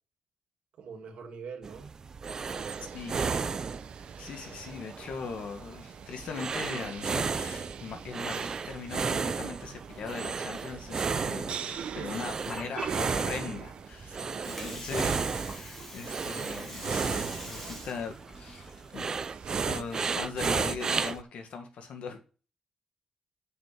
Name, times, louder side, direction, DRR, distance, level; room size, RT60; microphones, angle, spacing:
voice 1, 0.8-1.9 2.3-2.8 11.6-12.3 14.1-14.8 15.8-15.9, right 5 dB, 80° right, 2.1 m, -45 dB
sound 1, 1.6-21.2, right 5 dB, 35° right, 0.4 m, -34 dB
sound 2, 2.6-19.8, right 8 dB, 60° right, 0.7 m, -45 dB
voice 2, 2.9-3.4 4.2-19.1 19.6-22.2, left 5 dB, 75° left, 1.6 m, -40 dB
Water, 12.5-20.1, left 1 dB, 20° left, 2.1 m, -45 dB
6.7 x 5.9 x 7.4 m
wide cardioid pair, 170°, 2 cm